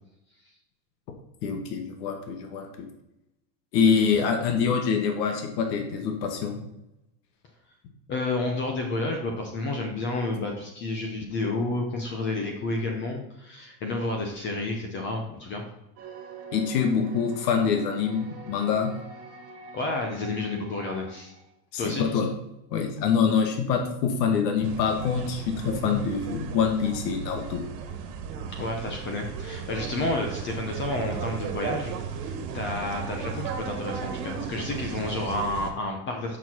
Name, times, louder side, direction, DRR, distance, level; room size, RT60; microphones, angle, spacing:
voice 1, 1.4-2.9 3.7-6.6 16.5-18.9 21.7-22.3 22.7-27.6, left 6 dB, 75° left, 4 dB, 1.6 m, -25 dB
voice 2, 8.1-15.6 19.7-21.3 21.8-22.1 28.5-31.9 32.2-36.4, left 2 dB, 25° left, 2 dB, 0.8 m, -30 dB
sound 1, 16.0-21.5, right 3 dB, 30° right, 1.3 m, -44 dB
sound 2, 24.6-35.7, right 6 dB, 65° right, 1.6 m, -35 dB
7.0 x 6.1 x 5.9 m, 0.89 s
supercardioid pair, 175°, 50 cm